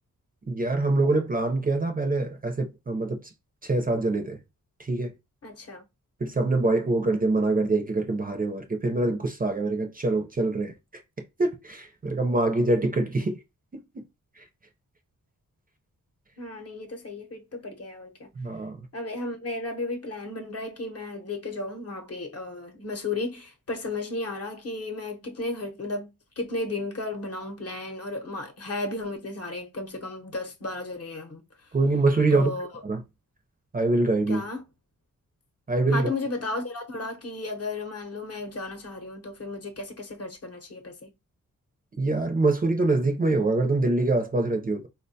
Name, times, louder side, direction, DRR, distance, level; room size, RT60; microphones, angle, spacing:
voice 1, 0.5-3.2 3.6-4.4 4.8-5.1 6.2-10.7 11.4-13.4 13.9-14.0 18.4-18.8 31.7-32.5 32.8-33.0 33.7-34.4 35.7-36.1 41.9-44.9, right 2 dB, 25° right, 0.5 m, -24 dB
voice 2, 5.4-5.8 16.4-18.3 18.9-31.4 32.3-32.7 34.3-34.6 35.9-41.1, left 2 dB, 45° left, 0.8 m, -34 dB
4.1 x 2.2 x 2.6 m
wide cardioid pair, 140°, 33 cm